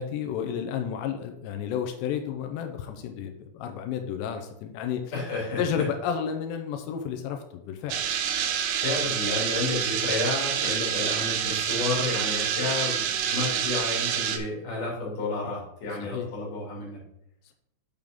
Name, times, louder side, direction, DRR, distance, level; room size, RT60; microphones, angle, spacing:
voice 1, 0.0-5.1 5.6-8.0 16.0-16.3, left 8 dB, 90° left, 5 dB, 2.4 m, -31 dB
voice 2, 5.1-5.6 8.6-17.0, left 3 dB, 45° left, -4 dB, 3.6 m, -31 dB
sound 1, 7.9-14.4, right 9 dB, 85° right, 3.1 m, -27 dB
7.6 x 6.7 x 3.6 m, 0.76 s
omnidirectional pair, 6.0 m